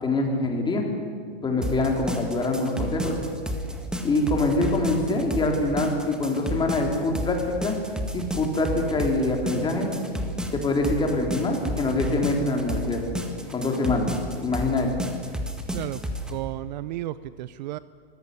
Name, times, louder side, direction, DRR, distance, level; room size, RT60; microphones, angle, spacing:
voice 1, 0.0-0.8 1.4-3.2 4.0-7.8 8.1-9.9 10.5-13.0 13.5-14.1 14.4-14.9, left 2 dB, 15° left, 2 dB, 3.9 m, -24 dB
sound 1, 1.6-16.3, equal, ahead, 1.8 m, -31 dB
voice 2, 16.3-17.8, right 16 dB, 45° right, 16 dB, 0.6 m, -33 dB
24.5 x 15.5 x 9.8 m, 2.1 s
hypercardioid pair, 140°, 31 cm